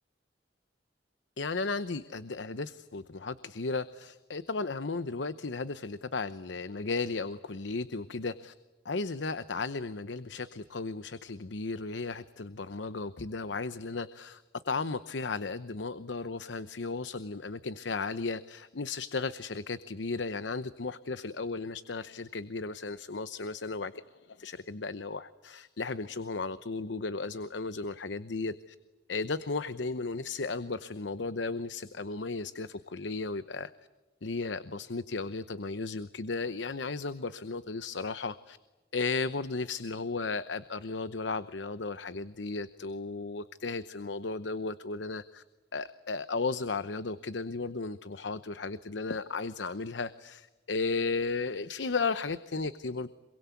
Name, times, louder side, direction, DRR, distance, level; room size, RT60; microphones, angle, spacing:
voice 1, 1.4-8.5 8.8-23.9 24.3-28.7 29.1-33.7 34.2-38.6 38.9-45.4 45.7-53.1, left 3 dB, 80° left, 14 dB, 0.9 m, -35 dB
26.5 x 23.0 x 8.3 m, 1.1 s
head